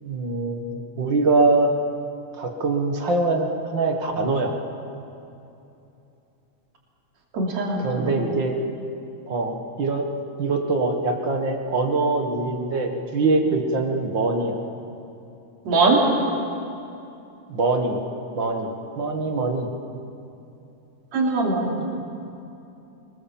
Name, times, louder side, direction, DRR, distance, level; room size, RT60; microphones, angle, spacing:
voice 1, 0.0-1.7 2.4-4.5 7.8-8.5 9.3-10.1 10.4-14.6 17.5-18.0 18.4-19.7, right 3 dB, 45° right, 4 dB, 1.9 m, -23 dB
voice 2, 7.3-8.2 15.7-16.0 21.1-21.8, right 3 dB, 60° right, -1 dB, 4.3 m, -21 dB
25.0 x 21.5 x 7.4 m, 2.8 s
omnidirectional pair, 3.5 m